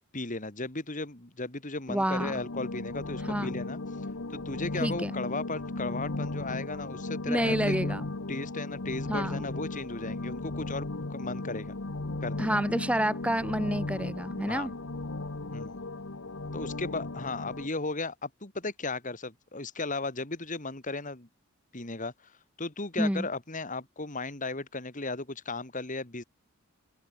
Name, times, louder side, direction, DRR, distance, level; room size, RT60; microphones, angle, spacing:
voice 1, 0.1-3.8 4.3-7.9 8.3-11.8 12.2-12.6 14.5-14.7 15.5-15.8 16.5-21.3 21.7-22.3 22.6-26.2, left 3 dB, 35° left, 2.4 m, -36 dB
voice 2, 1.9-2.4 3.3-3.5 4.8-5.2 7.3-8.0 9.1-9.4 12.4-14.7 23.0-23.3, equal, 5° right, 4.6 m, -29 dB
sound 1, 2.2-17.7, left 2 dB, 60° left, 1.2 m, -36 dB
open air
head